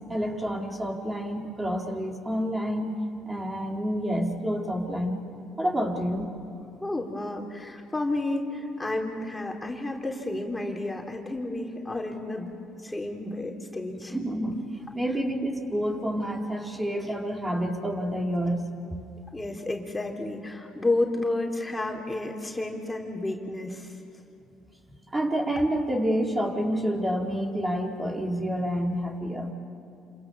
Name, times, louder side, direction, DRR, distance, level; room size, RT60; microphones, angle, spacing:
voice 1, 0.1-2.9 3.3-5.2 5.6-6.3 14.1-14.6 14.9-18.7 25.1-29.5, equal, 20° right, 0 dB, 4.5 m, -28 dB
voice 2, 6.8-12.5 12.8-14.2 19.3-24.0, left 2 dB, 15° left, 0 dB, 3.9 m, -31 dB
28.5 x 26.5 x 7.3 m, 2.7 s
hypercardioid pair, 60°, 0 cm